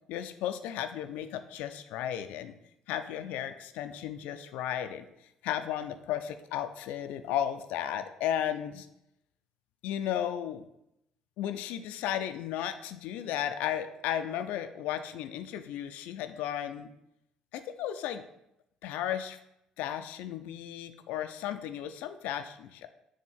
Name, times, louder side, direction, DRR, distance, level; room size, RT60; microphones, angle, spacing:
voice 1, 0.1-2.5 2.9-5.0 5.4-8.9 9.8-10.6 11.4-16.9 17.5-18.2 18.8-19.4 19.8-22.9, left 10 dB, 65° left, 9 dB, 0.4 m, -34 dB
6.5 x 3.4 x 5.5 m, 0.81 s
hypercardioid pair, 50°, 3 cm